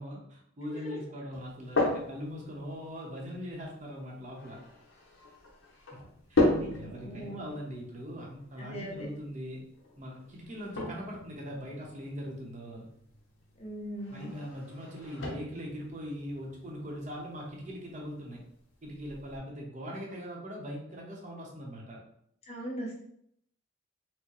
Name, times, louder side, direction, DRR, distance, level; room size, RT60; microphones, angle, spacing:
voice 1, 0.0-4.6 5.9-6.0 6.3-9.6 10.0-12.9 14.1-18.4 18.8-22.0, equal, 35° right, -1 dB, 0.8 m, -41 dB
sound 1, 1.3-19.4, left 2 dB, 70° left, 0.9 m, -37 dB
voice 2, 6.4-7.4 8.6-9.1 13.6-14.3 22.5-23.0, equal, 30° left, -1 dB, 0.7 m, -40 dB
4.5 x 2.1 x 3.0 m, 0.72 s
head